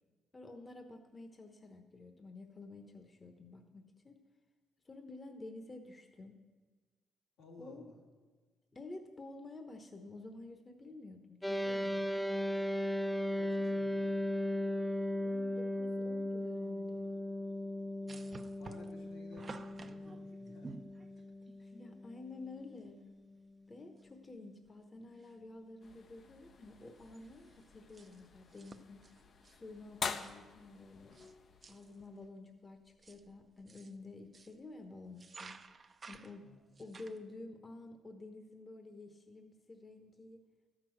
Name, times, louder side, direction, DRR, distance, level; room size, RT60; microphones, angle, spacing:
voice 1, 0.3-4.2 4.8-6.4 7.6-7.9 8.7-12.3 15.2-17.1 21.6-23.0 23.7-29.1 29.5-31.1 31.7-35.6 36.1-36.5 36.8-40.4, left 2 dB, 25° left, 5 dB, 1.1 m, -51 dB
voice 2, 7.4-8.0 13.3-14.1 18.1-20.9 21.1-21.2 36.4-36.8, left 2 dB, 90° left, -3 dB, 2.8 m, -56 dB
sound 1, 11.4-23.0, left 1 dB, 10° left, 0.4 m, -37 dB
sound 2, 18.1-21.6 22.8-22.9 23.2-23.3 24.0-24.4 24.7-25.5 25.9-26.1 26.4-31.3 31.6-32.0 32.7-34.6 35.0-37.2, right 4 dB, 35° right, 0.6 m, -54 dB
sound 3, 25.8-32.3, left 5 dB, 50° left, 0.7 m, -47 dB
12.5 x 6.1 x 7.8 m, 1.4 s
cardioid pair, 90°, 0 cm